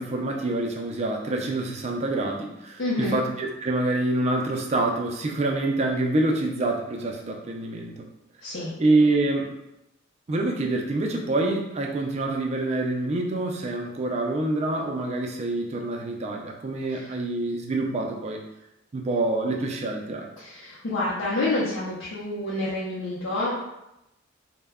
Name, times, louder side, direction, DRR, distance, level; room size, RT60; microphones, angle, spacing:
voice 1, 0.0-8.0 8.8-9.5 10.3-18.4 18.9-20.3, right 2 dB, 30° right, 1 dB, 0.3 m, -26 dB
voice 2, 2.8-3.2 8.4-8.7 16.9-17.1 20.4-23.6, left 2 dB, 65° left, -8 dB, 0.6 m, -28 dB
2.2 x 2.1 x 3.4 m, 0.89 s
head